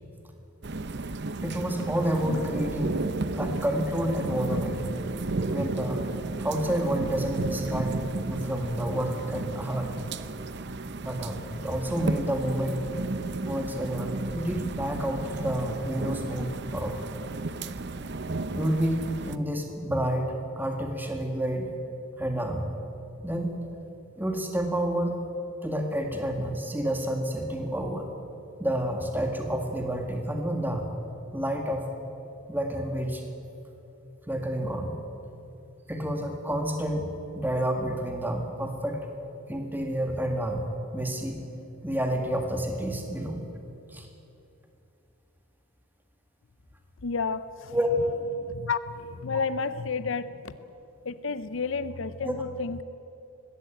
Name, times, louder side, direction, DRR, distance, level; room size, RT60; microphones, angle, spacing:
sound 1, 0.6-19.4, right 2 dB, 50° right, 0.7 m, -33 dB
voice 1, 1.4-3.0 3.3-4.8 5.5-6.1 6.4-10.0 11.0-12.8 13.4-17.0 18.5-21.7 22.2-22.7 23.2-23.5 24.2-25.2 25.6-28.1 28.6-30.9 31.3-31.9 32.5-33.2 34.3-35.0 35.9-39.0 39.4-41.4 41.8-43.4 43.9-44.1 47.7-47.9 52.2-52.4, right 1 dB, 10° right, 3 dB, 1.8 m, -29 dB
voice 2, 47.0-47.4 48.4-48.8 49.2-50.3 51.1-52.8, left 5 dB, 60° left, 14 dB, 0.6 m, -30 dB
20.0 x 16.0 x 9.1 m, 2.8 s
head